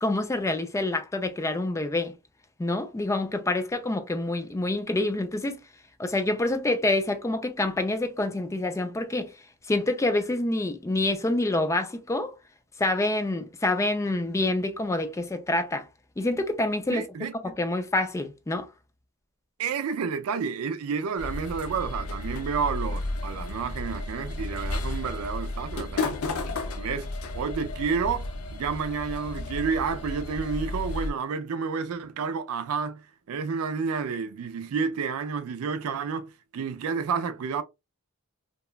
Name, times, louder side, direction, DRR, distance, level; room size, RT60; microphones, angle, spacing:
voice 1, 0.0-2.1 2.6-5.6 6.0-9.3 9.7-12.3 12.8-15.9 16.2-17.1 17.4-18.7, left 2 dB, 15° left, 0.3 m, -27 dB
voice 2, 16.9-17.3 19.6-26.2 26.7-27.1 27.3-33.0 33.3-37.6, right 5 dB, 75° right, 0.4 m, -30 dB
sound 1, 21.2-31.1, left 2 dB, 75° left, 0.5 m, -33 dB
2.9 x 2.2 x 2.2 m
head